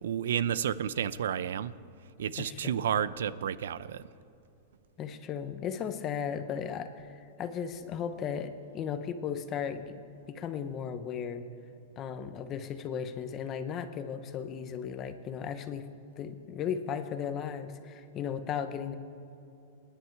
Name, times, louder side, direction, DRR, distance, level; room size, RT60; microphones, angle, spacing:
voice 1, 0.0-1.7 2.2-4.0, right 9 dB, 85° right, 17 dB, 0.6 m, -31 dB
voice 2, 2.4-2.8 5.0-10.0 10.3-11.4 12.0-15.9 16.2-18.9, left 7 dB, 25° left, 9 dB, 1.0 m, -36 dB
28.0 x 10.0 x 4.7 m, 2.7 s
supercardioid pair, 155°, 0 cm